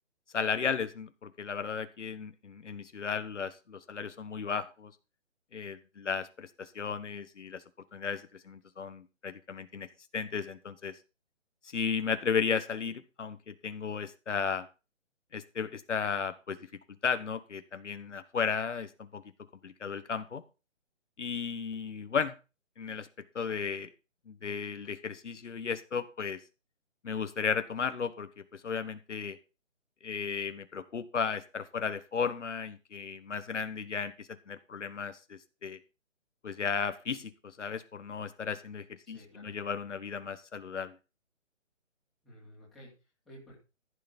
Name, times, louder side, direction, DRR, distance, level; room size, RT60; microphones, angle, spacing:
voice 1, 0.3-4.9 5.5-7.6 7.9-9.9 10.1-11.0 11.6-14.7 15.3-16.6 17.0-19.2 19.6-20.4 21.2-22.3 22.8-23.1 23.3-23.9 24.3-26.4 27.0-29.4 30.0-35.8 36.4-40.9, left 6 dB, 65° left, 11 dB, 1.3 m, -34 dB
voice 2, 39.0-39.6 42.2-43.5, equal, ahead, -8 dB, 2.8 m, -53 dB
14.5 x 6.8 x 5.3 m, 0.30 s
hypercardioid pair, 175°, 38 cm